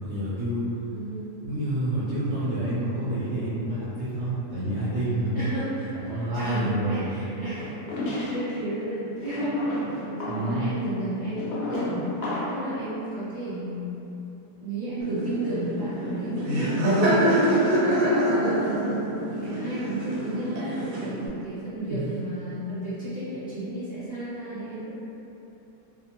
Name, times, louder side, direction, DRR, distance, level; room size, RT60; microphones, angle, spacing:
voice 1, 0.0-0.7 1.4-5.3 5.9-7.1 10.3-10.9 21.9-22.0, right 1 dB, 70° right, -11 dB, 0.7 m, -28 dB
voice 2, 0.9-1.3 5.3-14.0 14.6-17.7 18.2-18.9 19.3-24.9, right 1 dB, 5° left, -15 dB, 0.8 m, -33 dB
sound 1, 7.6-8.6 9.2-12.7, left 1 dB, 60° left, 0.7 m, -32 dB
Laughter, 15.0-21.3, equal, 85° right, 1.1 m, -25 dB
2.7 x 2.0 x 2.7 m, 3.0 s
omnidirectional pair, 1.6 m